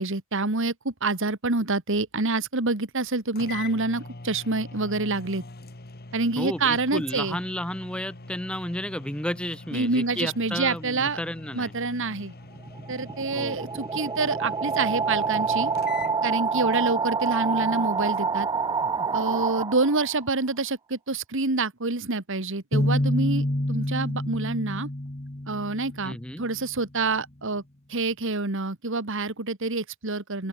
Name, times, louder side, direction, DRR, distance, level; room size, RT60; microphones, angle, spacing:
voice 1, 0.0-5.4 6.1-7.4 9.7-11.2 11.5-12.3 12.9-15.7 16.2-18.5 19.1-24.9 25.5-27.6 27.9-30.5, right 3 dB, 65° right, 2.0 m, -27 dB
sound 1, 3.0-3.1 3.4-16.2, left 3 dB, 50° left, 1.8 m, -43 dB
voice 2, 6.4-11.7 13.3-13.7 26.0-26.4, left 1 dB, 5° left, 0.9 m, -32 dB
sound 2, 12.4-20.2, right 5 dB, 20° right, 0.4 m, -27 dB
sound 3, 22.7-26.4, left 1 dB, 30° left, 1.6 m, -27 dB
open air
head